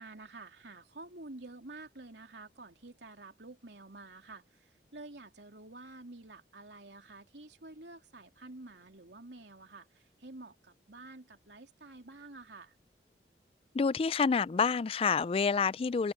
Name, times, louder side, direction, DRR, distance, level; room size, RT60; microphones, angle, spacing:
voice 1, 0.0-12.8, right 2 dB, 80° right, 3.0 m, -50 dB
voice 2, 13.7-16.1, left 5 dB, 30° left, 0.3 m, -28 dB
open air
head